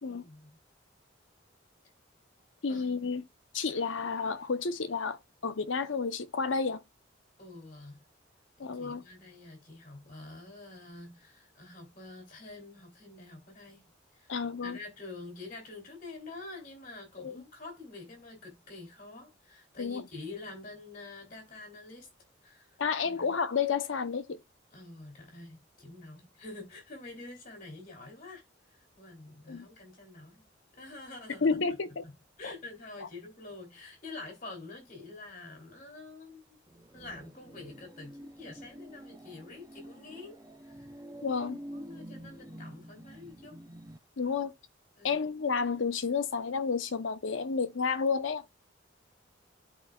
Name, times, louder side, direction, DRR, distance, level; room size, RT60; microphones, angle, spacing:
voice 1, 0.1-0.6 2.7-3.1 7.4-8.0 8.6-13.8 14.1-14.3 14.6-22.1 22.4-22.7 23.0-23.3 24.7-28.4 28.7-30.5 30.8-36.6 36.9-40.9 41.3-41.5 41.7-43.6 44.3-44.4 45.0-45.2, left 3 dB, 45° left, 2.8 m, -47 dB
voice 2, 2.6-3.2 3.5-6.8 8.6-9.0 14.3-14.8 17.2-17.4 19.8-20.0 22.8-24.4 29.5-29.7 31.4-32.0 32.4-32.5 33.0-33.1 41.2-41.6 44.2-44.5 45.0-48.4, left 5 dB, 75° left, 0.7 m, -31 dB
sound 1, 36.7-44.0, right 1 dB, 15° right, 0.5 m, -48 dB
12.5 x 4.6 x 2.3 m
head